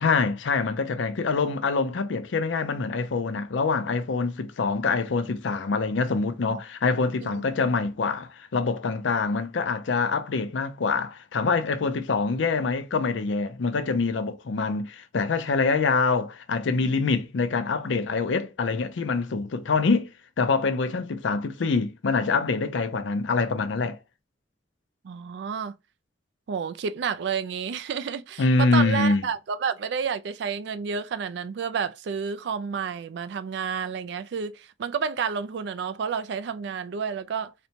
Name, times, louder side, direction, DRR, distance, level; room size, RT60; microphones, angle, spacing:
voice 1, 0.0-20.1 20.4-24.0 28.4-29.3, left 4 dB, 85° left, 0.5 m, -25 dB
voice 2, 7.2-7.7 25.0-25.8 26.5-37.5, right 6 dB, 65° right, 0.3 m, -30 dB
4.1 x 2.2 x 2.8 m
head